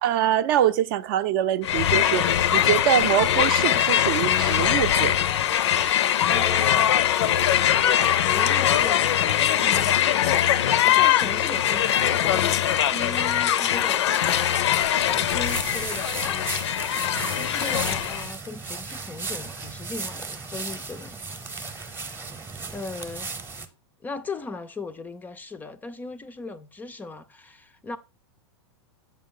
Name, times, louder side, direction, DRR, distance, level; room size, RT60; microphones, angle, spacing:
voice 1, 0.0-2.2 2.5-5.1, right 11 dB, 50° right, 0.5 m, -24 dB
Crowd, 1.6-18.3, left 11 dB, 80° left, 0.5 m, -22 dB
voice 2, 6.3-7.0 7.6-10.4 10.8-14.4 15.2-16.5 17.3-21.2 21.6-22.0 22.7-23.3 24.0-28.0, left 3 dB, 10° left, 0.4 m, -38 dB
sound 1, 15.1-23.7, right 4 dB, 15° right, 0.8 m, -35 dB
7.4 x 5.3 x 3.7 m
hypercardioid pair, 130°, 14 cm